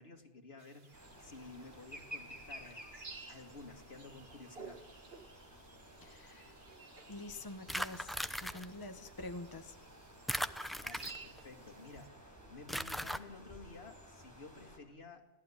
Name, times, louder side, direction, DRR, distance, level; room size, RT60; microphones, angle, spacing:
voice 1, 0.0-2.8 3.3-4.8 10.8-15.3, left 3 dB, 65° left, 3 dB, 2.4 m, -53 dB
sound 1, 0.6-12.1, right 4 dB, 65° right, 2.1 m, -55 dB
sound 2, 0.9-14.8, equal, 15° right, 5.2 m, -54 dB
voice 2, 6.0-6.5 7.1-8.1 8.4-9.8, left 2 dB, 20° left, 7 dB, 1.2 m, -46 dB
sound 3, 7.7-8.7 10.3-11.4 12.7-13.2, equal, ahead, 0.6 m, -38 dB
29.5 x 17.0 x 9.9 m, 1.1 s
omnidirectional pair, 1.1 m